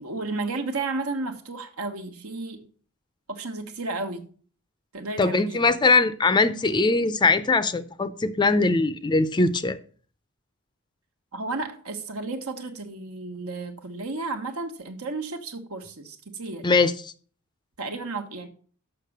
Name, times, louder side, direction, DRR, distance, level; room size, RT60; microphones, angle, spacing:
voice 1, 0.0-2.7 3.3-4.3 4.9-5.7 11.3-16.7 17.8-18.5, right 3 dB, 80° right, 1.4 m, -33 dB
voice 2, 5.2-9.8 16.6-16.9, left 3 dB, 20° left, 0.4 m, -21 dB
6.6 x 6.0 x 6.5 m
head